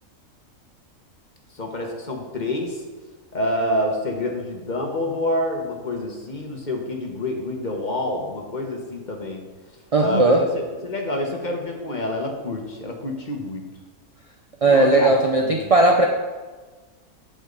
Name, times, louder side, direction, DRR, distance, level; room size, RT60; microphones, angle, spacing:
voice 1, 1.5-2.8 3.3-9.4 10.0-13.6 14.6-15.1 15.4-15.7, left 1 dB, 35° left, 2 dB, 1.1 m, -27 dB
voice 2, 9.9-10.4 14.6-16.1, right 2 dB, 60° right, 2 dB, 0.3 m, -17 dB
8.6 x 7.8 x 3.9 m, 1.3 s
omnidirectional pair, 1.6 m